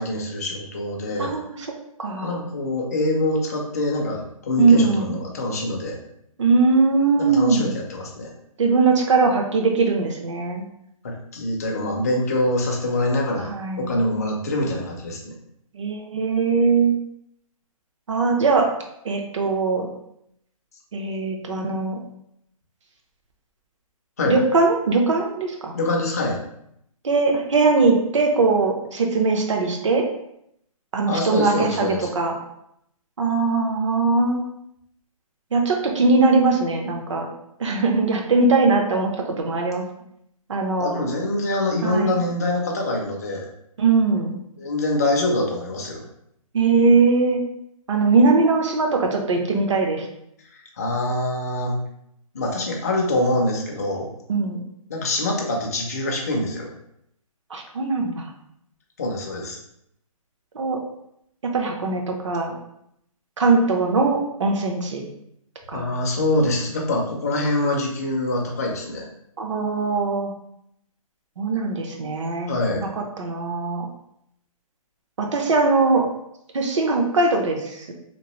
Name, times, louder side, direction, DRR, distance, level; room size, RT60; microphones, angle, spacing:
voice 1, 0.0-1.4 2.2-6.0 7.2-8.3 11.0-13.5 13.8-15.3 24.2-24.4 25.7-26.4 31.1-32.1 40.8-43.5 44.6-46.1 50.8-51.8 52.3-54.1 54.9-56.7 59.0-59.6 65.7-69.1 72.5-72.8, left 1 dB, 25° left, 0 dB, 0.4 m, -24 dB
voice 2, 1.2-1.7 2.0-2.4 4.6-5.1 6.4-7.8 8.6-10.7 13.4-13.9 15.7-17.0 18.1-18.7 19.0-19.9 20.9-22.0 24.2-25.7 27.0-30.1 30.9-32.4 33.2-34.4 35.5-37.3 37.6-39.8 40.5-41.0 41.8-42.2 43.8-44.4 46.5-47.4 47.9-50.1 54.3-54.6 57.5-58.3 60.5-60.8 61.5-62.5 63.4-65.0 65.7-65.8 69.4-70.3 71.4-73.9 75.2-76.1 76.5-77.9, right 3 dB, 55° right, 2 dB, 0.6 m, -20 dB
2.9 x 2.4 x 2.9 m, 0.75 s
hypercardioid pair, 165°, 19 cm